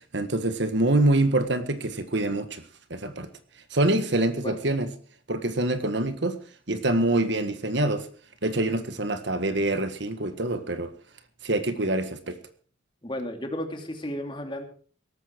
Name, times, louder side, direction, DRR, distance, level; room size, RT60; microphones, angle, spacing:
voice 1, 0.1-2.6 2.9-3.3 3.7-4.9 5.3-6.4 6.7-8.1 8.4-10.9 11.4-12.4, right 2 dB, 60° right, 1.6 m, -25 dB
voice 2, 4.2-4.6 13.0-14.6, left 1 dB, 25° left, 2.8 m, -34 dB
18.0 x 14.0 x 4.6 m
head